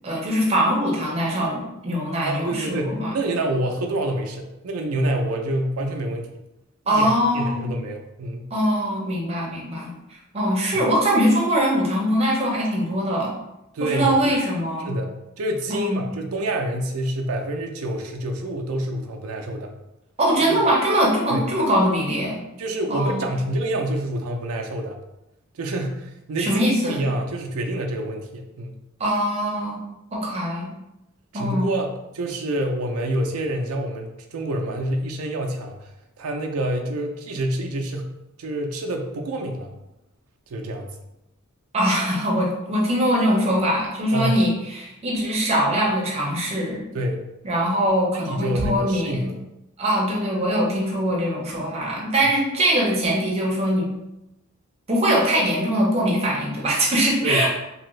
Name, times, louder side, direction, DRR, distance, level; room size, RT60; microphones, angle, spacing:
voice 1, 0.0-3.2 6.9-7.6 8.5-13.3 13.8-14.9 15.7-16.1 20.2-22.4 22.9-23.3 26.4-27.0 29.0-29.8 30.1-30.7 31.3-31.7 41.7-46.8 47.4-49.3 49.8-53.9 54.9-57.5, equal, 30° right, -3 dB, 0.8 m, -22 dB
voice 2, 2.2-6.3 6.9-8.5 10.7-10.9 13.7-14.3 14.8-19.7 20.5-20.6 21.3-21.5 22.6-25.0 25.5-28.8 31.3-35.9 36.2-39.7 40.5-41.0 44.1-44.4 46.9-47.3 48.1-49.3 57.2-57.5, right 1 dB, 80° right, 3 dB, 0.5 m, -27 dB
2.9 x 2.6 x 3.1 m, 0.90 s
head